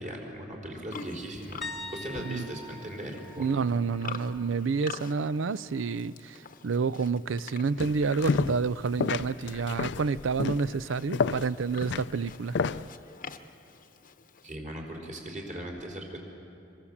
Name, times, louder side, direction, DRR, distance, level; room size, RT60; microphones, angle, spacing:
voice 1, 0.0-1.6 1.9-3.5 14.4-16.2, right 1 dB, 40° right, 4.0 m, -38 dB
Livestock farm animals working animals, 0.9-14.6, left 5 dB, 45° left, 0.9 m, -47 dB
sound 1, 1.6-5.4 5.7-6.0 8.9-9.0, left 2 dB, ahead, 1.1 m, -45 dB
voice 2, 3.4-12.6, right 4 dB, 90° right, 0.5 m, -29 dB
sound 2, 7.8-8.7 9.0-12.9, left 5 dB, 65° left, 0.5 m, -30 dB
26.0 x 23.0 x 7.3 m
head